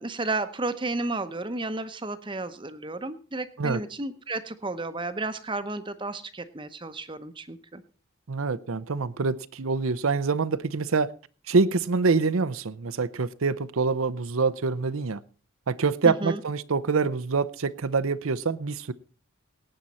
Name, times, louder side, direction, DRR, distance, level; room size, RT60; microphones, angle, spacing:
voice 1, 0.0-7.8 16.0-16.4, right 2 dB, 20° right, 0.8 m, -32 dB
voice 2, 8.3-11.1 11.5-15.2 15.7-18.9, right 4 dB, 70° right, 0.6 m, -25 dB
18.5 x 8.9 x 4.2 m
head